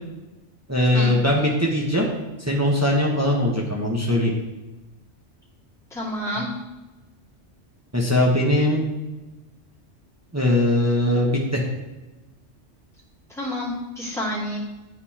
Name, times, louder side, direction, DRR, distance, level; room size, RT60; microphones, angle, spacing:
voice 1, 0.7-2.0 2.5-4.3 7.9-8.8 10.3-11.6, left 1 dB, 15° right, -2 dB, 0.9 m, -20 dB
voice 2, 5.9-6.5 13.3-14.6, equal, ahead, -8 dB, 2.0 m, -29 dB
10.0 x 5.2 x 2.9 m, 1.1 s
omnidirectional pair, 1.3 m